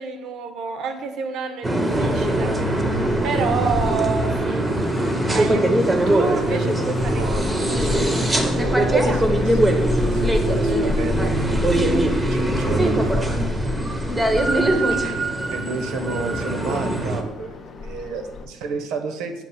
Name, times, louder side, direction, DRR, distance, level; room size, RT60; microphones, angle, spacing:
voice 1, 0.0-2.6 3.2-4.7 5.3-7.3 14.4-14.7, right 5 dB, 55° right, 8 dB, 0.5 m, -28 dB
sound 1, 1.6-17.2, right 1 dB, 10° right, 0.6 m, -21 dB
sound 2, 1.9-18.5, left 4 dB, 35° left, 0.5 m, -31 dB
voice 2, 7.1-13.3 14.1-15.2 15.5-19.4, right 3 dB, 85° right, 6 dB, 0.8 m, -32 dB
7.2 x 2.4 x 5.4 m, 1.1 s
cardioid pair, 160°, 0 cm